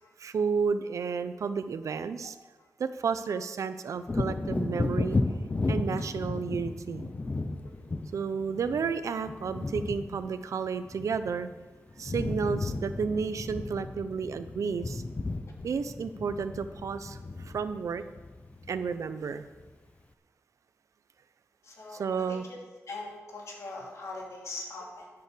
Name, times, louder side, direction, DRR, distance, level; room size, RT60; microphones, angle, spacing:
voice 1, 0.2-2.4 2.8-5.2 5.7-7.1 8.1-11.5 12.0-15.0 15.6-18.0 18.7-19.5 21.9-22.4, right 5 dB, 75° right, 11 dB, 0.6 m, -32 dB
Wind / Thunder, 4.0-11.6 11.9-19.1 19.6-19.7, left 2 dB, 25° left, 0.6 m, -34 dB
voice 2, 21.6-22.6 22.9-25.1, left 2 dB, 65° left, -1 dB, 2.8 m, -41 dB
11.5 x 6.9 x 6.8 m, 1.3 s
wide cardioid pair, 145°, 5 cm